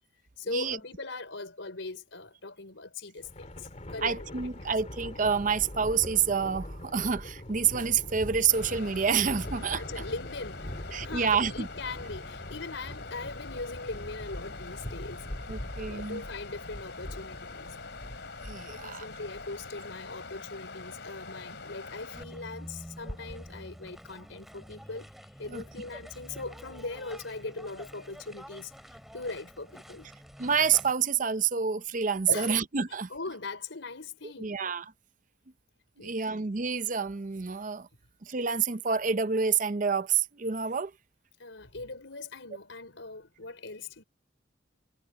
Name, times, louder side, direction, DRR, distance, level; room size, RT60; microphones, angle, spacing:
voice 1, 0.4-4.4 9.7-15.3 15.5-17.7 18.8-25.1 25.4-30.1 32.3-32.6 33.1-34.6 36.0-36.4 41.4-44.0, left 3 dB, 80° left, 4.1 m, -40 dB
Thunder, 3.2-19.8, left 1 dB, 35° left, 2.4 m, -42 dB
voice 2, 4.0-10.0 10.9-11.7 15.5-16.2 18.4-19.1 25.5-25.6 30.4-33.1 34.4-34.8 36.0-37.9 38.2-40.9, right 6 dB, 40° right, 0.6 m, -28 dB
Water, 8.5-22.2, left 4 dB, 60° left, 4.0 m, -44 dB
sound 1, 22.1-30.9, equal, ahead, 3.5 m, -47 dB
head